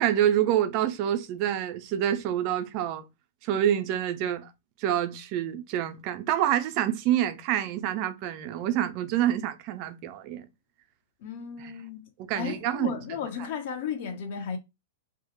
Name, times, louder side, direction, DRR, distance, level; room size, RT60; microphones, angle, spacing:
voice 1, 0.0-3.1 3.4-4.5 4.8-10.5 11.6-11.7 12.2-13.2, right 11 dB, 40° right, 0.4 m, -27 dB
voice 2, 11.2-12.1 12.3-14.6, left 7 dB, 55° left, 0.4 m, -34 dB
2.1 x 2.0 x 2.8 m
figure-of-eight pair, 100°, 0 cm